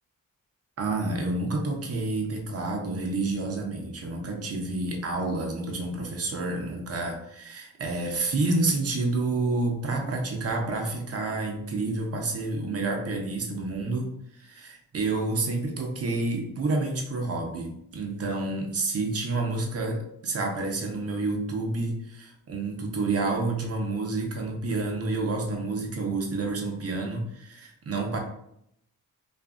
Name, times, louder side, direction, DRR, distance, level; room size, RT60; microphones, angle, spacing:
voice 1, 0.8-28.2, right 3 dB, 45° right, 2 dB, 0.7 m, -29 dB
2.6 x 2.5 x 2.3 m, 0.73 s
cardioid pair, 70°, 34 cm